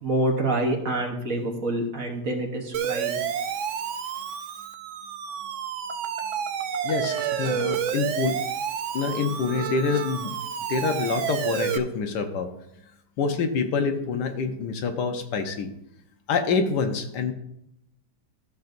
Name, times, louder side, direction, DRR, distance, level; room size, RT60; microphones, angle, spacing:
voice 1, 0.0-3.2, right 1 dB, 50° right, 2 dB, 1.4 m, -27 dB
Siren, 2.7-11.8, right 8 dB, 90° right, 0.6 m, -29 dB
voice 2, 6.8-8.4 8.9-10.3 10.7-12.5 13.2-15.7 16.3-17.3, left 5 dB, 70° left, 6 dB, 1.3 m, -26 dB
13.0 x 6.9 x 2.6 m, 0.79 s
omnidirectional pair, 2.0 m